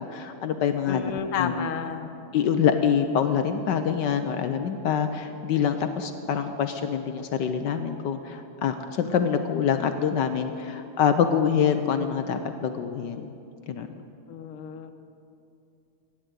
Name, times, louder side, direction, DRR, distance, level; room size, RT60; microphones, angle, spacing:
voice 1, 0.0-1.0 1.4-1.7 2.3-13.3 13.7-13.9, left 7 dB, 70° left, 8 dB, 1.2 m, -25 dB
voice 2, 0.9-2.1 14.3-14.9, left 7 dB, 90° left, 7 dB, 1.8 m, -31 dB
16.5 x 10.5 x 8.1 m, 2.7 s
omnidirectional pair, 2.4 m